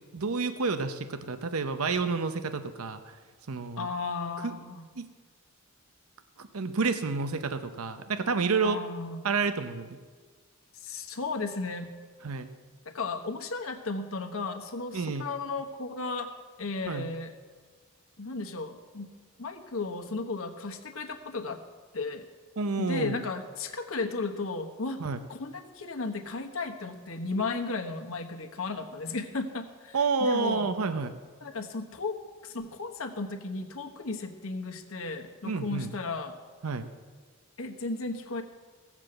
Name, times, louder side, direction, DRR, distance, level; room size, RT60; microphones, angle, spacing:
voice 1, 0.1-3.1 3.5-3.9 4.4-4.6 5.0-5.1 6.4-8.8 9.2-9.9 12.2-12.5 14.9-15.3 16.9-17.1 22.6-23.2 25.0-25.2 29.9-31.1 35.4-35.9 36.6-36.9, right 4 dB, 85° right, 10 dB, 0.8 m, -29 dB
voice 2, 3.8-4.8 8.6-9.2 10.7-11.9 12.8-16.3 16.6-17.3 18.2-19.1 19.4-21.6 21.9-22.2 22.8-25.0 25.3-30.7 31.4-36.3 37.6-38.4, left 3 dB, 70° left, 4 dB, 1.2 m, -35 dB
16.5 x 7.4 x 7.6 m, 1.5 s
head